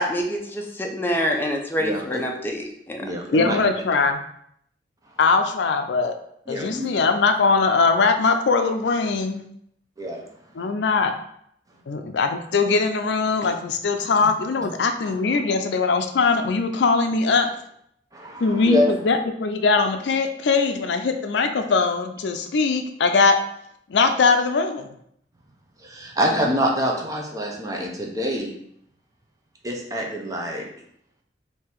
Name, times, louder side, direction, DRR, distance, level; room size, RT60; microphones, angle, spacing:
voice 1, 0.0-3.2, equal, 10° left, 1 dB, 0.6 m, -26 dB
voice 2, 1.8-2.2 3.0-3.6 6.5-6.9 10.0-10.2 15.3-15.4 18.1-18.9 25.8-28.5 29.6-30.6, equal, 20° right, 0 dB, 0.7 m, -25 dB
voice 3, 3.3-4.2 5.2-6.1 6.5-9.4 10.6-11.1 11.9-17.5 18.4-23.4 23.9-24.9, left 4 dB, 80° left, 6 dB, 0.4 m, -21 dB
3.7 x 2.8 x 4.5 m, 0.70 s
head